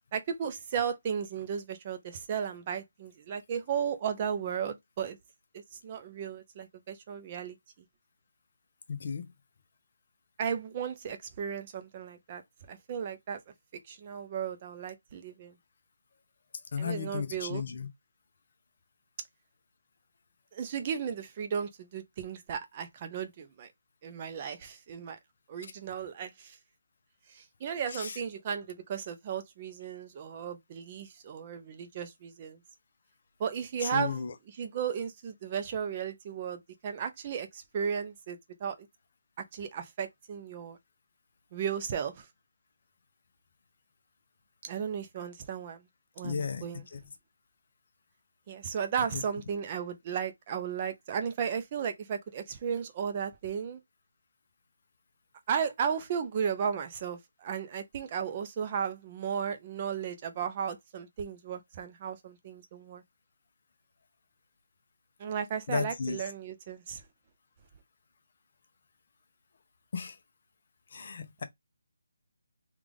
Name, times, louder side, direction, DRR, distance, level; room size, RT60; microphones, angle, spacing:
voice 1, 0.1-5.2 5.5-7.6 10.4-12.4 12.7-13.4 13.9-15.5 16.8-17.6 20.5-23.7 24.0-25.2 25.5-26.6 27.3-32.6 33.4-34.2 34.5-38.8 39.5-40.8 41.5-42.3 44.6-45.8 46.2-46.9 48.5-53.8 55.5-63.0 65.2-67.0, right 7 dB, 25° right, 0.6 m, -35 dB
voice 2, 8.9-9.3 16.7-17.9 27.9-28.2 33.8-34.3 46.2-46.6 46.9-47.0 49.1-49.2 65.7-66.2 69.9-70.2 70.9-71.4, left 5 dB, 40° left, 0.7 m, -34 dB
3.4 x 2.4 x 3.6 m
hypercardioid pair, 170°, 0 cm